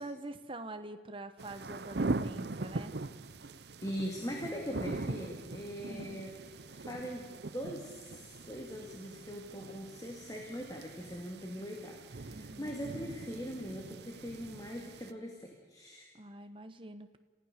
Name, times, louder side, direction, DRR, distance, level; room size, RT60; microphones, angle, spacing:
voice 1, 0.0-3.0 5.8-6.2 12.3-12.8 16.1-17.2, right 2 dB, 30° right, 9 dB, 1.1 m, -45 dB
sound 1, 1.4-15.1, right 3 dB, 65° right, 0.8 m, -41 dB
voice 2, 3.8-7.3 7.5-16.1, equal, 20° left, 1 dB, 2.2 m, -41 dB
29.0 x 15.5 x 6.7 m, 1.5 s
head